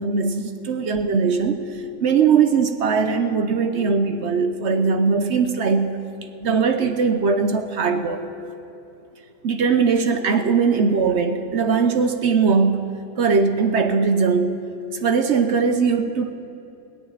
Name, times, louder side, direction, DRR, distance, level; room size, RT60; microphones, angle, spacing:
voice 1, 0.0-1.6 2.0-6.0 6.4-8.2 9.4-12.9 13.2-14.6 15.0-16.3, right 5 dB, 55° right, 7 dB, 0.9 m, -20 dB
17.0 x 6.4 x 9.9 m, 2.9 s
omnidirectional pair, 1.5 m